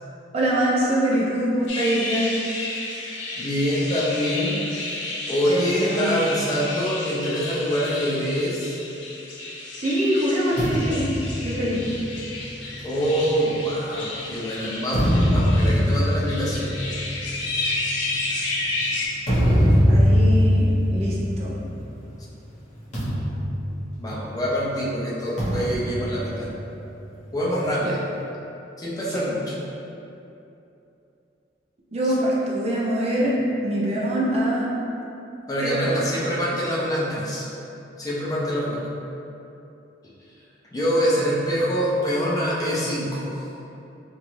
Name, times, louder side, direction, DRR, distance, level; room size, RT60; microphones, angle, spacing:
voice 1, 0.3-2.3 5.5-6.2 9.8-11.1 11.4-11.8 19.9-21.6 27.8-27.9 29.1-29.2 31.9-33.3 33.6-34.7 35.6-36.0, right 1 dB, 35° right, -5 dB, 0.5 m, -24 dB
sound 1, 1.7-19.1, left 2 dB, 85° left, 0.5 m, -32 dB
voice 2, 3.4-4.6 5.3-8.8 12.8-16.7 24.0-26.5 27.3-28.0 28.8-29.6 32.0-32.1 35.5-37.5 38.0-38.8 40.7-43.3, equal, 20° left, -6 dB, 0.4 m, -25 dB
sound 2, 10.6-14.2 14.7-22.1 22.4-22.6 22.9-24.5 25.4-27.1, equal, 40° left, 0.8 m, -23 dB
2.9 x 2.3 x 3.0 m, 2.8 s
head